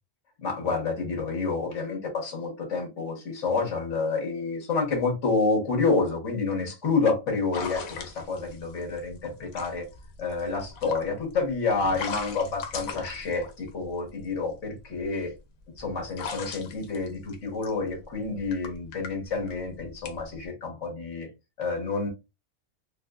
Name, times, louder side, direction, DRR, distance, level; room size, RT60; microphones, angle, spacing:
voice 1, 0.4-9.9 10.2-15.3 15.8-21.3 21.6-22.1, left 4 dB, 60° left, 1.6 m, -29 dB
sound 1, 7.5-14.2 14.8-20.4, left 5 dB, 80° left, 1.1 m, -39 dB
4.2 x 2.1 x 2.4 m
omnidirectional pair, 1.4 m